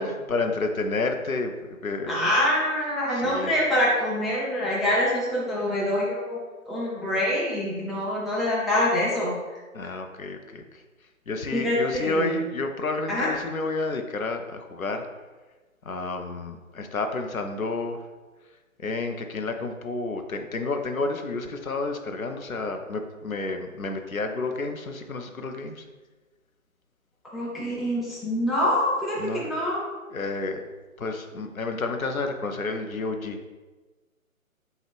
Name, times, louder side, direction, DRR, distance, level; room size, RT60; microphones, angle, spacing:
voice 1, 0.0-2.2 3.1-3.5 9.7-10.8 11.3-15.0 15.9-18.0 18.8-25.8 29.2-29.5 30.1-30.6 31.0-33.5, left 3 dB, 75° left, 5 dB, 0.7 m, -30 dB
voice 2, 2.1-6.4 6.7-9.4 11.5-12.3 13.1-13.3 27.3-29.8, left 1 dB, ahead, -6 dB, 0.4 m, -25 dB
5.3 x 2.4 x 3.4 m, 1.3 s
figure-of-eight pair, 150°, 42 cm